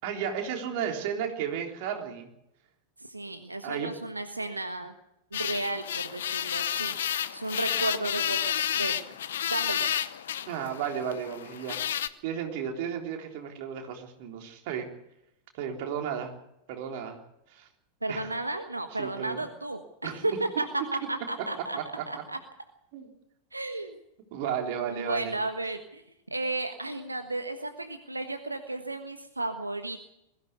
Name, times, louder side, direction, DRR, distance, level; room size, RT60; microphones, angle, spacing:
voice 1, 0.0-2.3 3.6-3.9 10.5-11.8 12.2-14.9 15.5-16.3 16.7-17.2 17.5-17.7 18.1-18.3 19.0-19.4 20.0-20.2 21.8-22.0 22.9-23.1 24.3-25.3, right 8 dB, 50° right, 3 dB, 3.7 m, -33 dB
voice 2, 3.0-4.9 5.3-6.9 7.3-9.0 9.5-9.9 18.0-21.8 22.1-22.4 23.5-24.0 24.9-26.0 26.3-30.1, right 2 dB, 85° right, 7 dB, 1.4 m, -33 dB
sound 1, 5.3-12.1, left 10 dB, 60° left, 0.9 m, -31 dB
21.5 x 16.0 x 8.3 m, 0.85 s
figure-of-eight pair, 90°, 0 cm